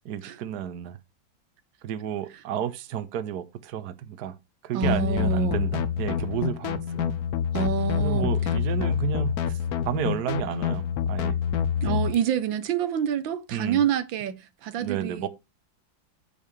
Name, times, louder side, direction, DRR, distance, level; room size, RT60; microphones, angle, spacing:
voice 1, 0.0-1.0 1.8-4.3 4.6-7.1 8.0-9.6 9.8-11.4 13.5-13.8 14.8-15.3, right 9 dB, 60° right, 1.4 m, -31 dB
voice 2, 4.7-5.6 7.5-8.3 11.8-15.3, right 9 dB, 80° right, 1.6 m, -27 dB
sound 1, 4.8-12.1, left 8 dB, 60° left, 1.2 m, -27 dB
8.9 x 6.9 x 3.2 m
omnidirectional pair, 2.1 m